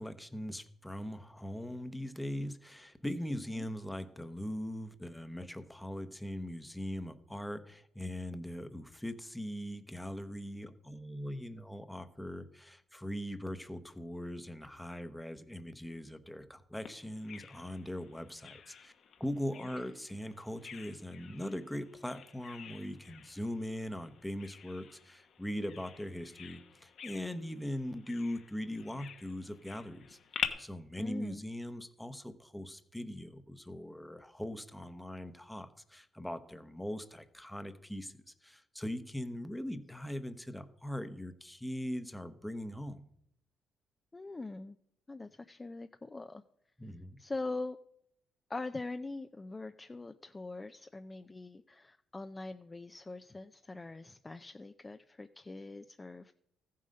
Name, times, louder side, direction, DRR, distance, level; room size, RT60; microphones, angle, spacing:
voice 1, 0.0-18.9 19.2-30.2 30.6-43.0 46.8-47.2, equal, 5° left, 11 dB, 0.9 m, -40 dB
voice 2, 3.3-3.7 19.6-19.7 31.0-31.4 44.1-44.8 45.1-46.4 47.2-47.8 48.5-56.3, left 3 dB, 20° left, 8 dB, 0.5 m, -43 dB
Bird vocalization bird call bird song, 16.9-30.5, left 7 dB, 65° left, 1.1 m, -47 dB
14.0 x 7.6 x 5.3 m, 0.74 s
cardioid pair, 90°, 0 cm